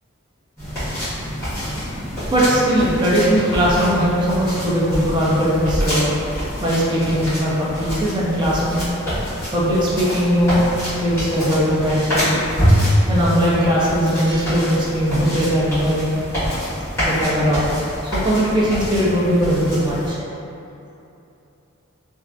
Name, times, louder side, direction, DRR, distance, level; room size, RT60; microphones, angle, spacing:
sound 1, 0.6-20.1, equal, 15° left, 1.4 m, -25 dB
voice 1, 2.3-6.1 6.6-8.8 9.5-12.4 13.1-16.2 17.0-17.6 18.2-20.2, equal, 20° right, -7 dB, 0.5 m, -19 dB
3.1 x 2.4 x 2.5 m, 2.8 s
head